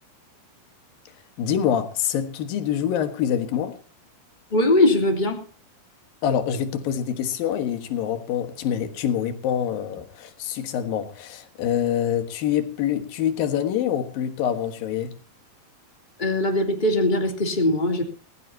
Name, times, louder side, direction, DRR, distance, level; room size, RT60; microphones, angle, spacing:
voice 1, 1.4-3.8 6.2-15.2, left 9 dB, 75° left, 3.2 m, -25 dB
voice 2, 4.5-5.4 16.2-18.0, left 1 dB, 15° left, 2.9 m, -21 dB
21.0 x 15.0 x 2.8 m
omnidirectional pair, 4.1 m